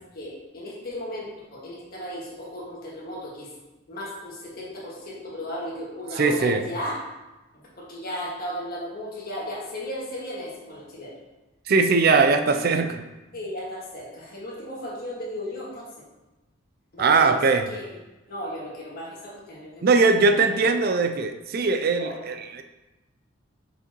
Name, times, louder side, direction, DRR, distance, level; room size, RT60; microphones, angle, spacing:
voice 1, 0.1-3.5 3.9-7.0 7.5-11.2 12.8-12.9 13.3-15.9 16.9-17.4 17.7-17.8 18.3-19.9 20.1-21.0 22.0-22.2, left 1 dB, 50° left, -6 dB, 1.7 m, -35 dB
voice 2, 6.2-6.6 11.7-13.0 17.0-17.7 19.8-22.6, right 4 dB, 50° right, 7 dB, 0.4 m, -20 dB
6.5 x 4.8 x 3.0 m, 1.1 s
head